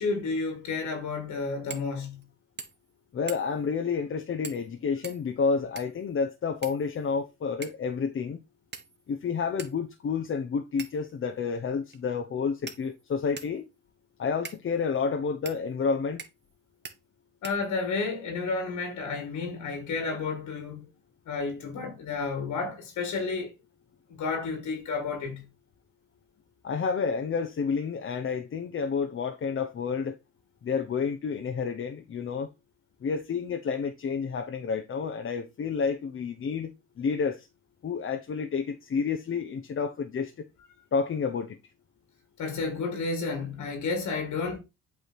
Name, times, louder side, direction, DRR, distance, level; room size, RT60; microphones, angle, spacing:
voice 1, 0.0-2.2 17.4-20.9 21.3-23.5 24.1-25.4 42.4-44.6, left 4 dB, 75° left, 2.1 m, -31 dB
sound 1, 1.7-1.9 2.2-2.3 2.6-2.9 3.3-3.7 4.4-4.7 5.0-6.0 6.6-7.2 7.6-7.9 8.7-9.1 9.6-9.7 10.8-11.1 11.9-12.0 12.7-13.6 14.4-14.6 15.4-15.6 16.2-16.5 16.8-17.0 17.4-18.0, right 5 dB, 35° right, 1.3 m, -43 dB
voice 2, 3.1-8.4 9.1-13.6 14.2-16.2 26.6-30.2 30.6-32.5 33.0-36.7 37.0-37.5 37.8-40.4 40.9-41.6, left 5 dB, 45° left, 0.8 m, -30 dB
8.2 x 3.4 x 4.4 m
cardioid pair, 90°, 30 cm